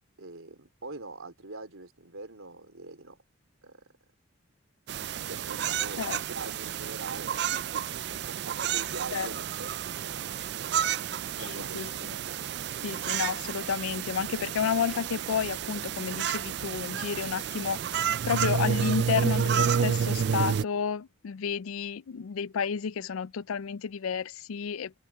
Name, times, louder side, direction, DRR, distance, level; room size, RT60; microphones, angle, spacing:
voice 1, 0.2-3.2 3.6-3.9 5.3-11.0 11.4-12.0 12.3-12.4, right 3 dB, 85° right, 3.9 m, -44 dB
sound 1, 4.9-20.6, right 8 dB, 50° right, 0.3 m, -30 dB
voice 2, 11.4-12.2 12.8-24.9, left 6 dB, 85° left, 0.4 m, -31 dB
open air
head